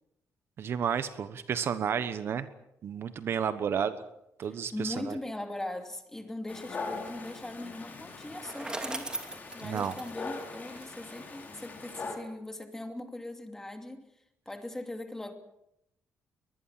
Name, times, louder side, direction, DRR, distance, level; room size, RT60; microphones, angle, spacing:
voice 1, 0.6-2.5 2.8-4.0 4.4-5.2 9.6-9.9, right 7 dB, 50° right, 12 dB, 1.2 m, -31 dB
voice 2, 4.7-9.1 9.5-14.1 14.5-15.3, left 1 dB, 10° left, 6 dB, 2.7 m, -40 dB
Dog, 6.5-12.2, left 4 dB, 30° left, 5.6 m, -42 dB
Bicycle, 8.1-11.3, right 2 dB, 15° right, 2.9 m, -40 dB
23.0 x 20.5 x 7.6 m, 0.81 s
cardioid pair, 150°, 5 cm